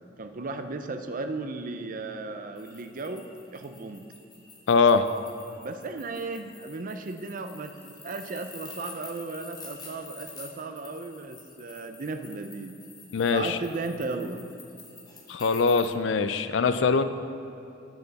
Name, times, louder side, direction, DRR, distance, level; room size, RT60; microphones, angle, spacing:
voice 1, 0.2-4.1 5.6-12.8 13.3-14.4, right 3 dB, 45° right, 7 dB, 0.5 m, -35 dB
sound 1, 2.6-15.9, left 3 dB, 20° left, 1.2 m, -48 dB
voice 2, 4.7-5.0 13.1-13.6 15.3-17.0, left 5 dB, 70° left, 11 dB, 0.4 m, -22 dB
9.1 x 6.7 x 4.0 m, 2.8 s
head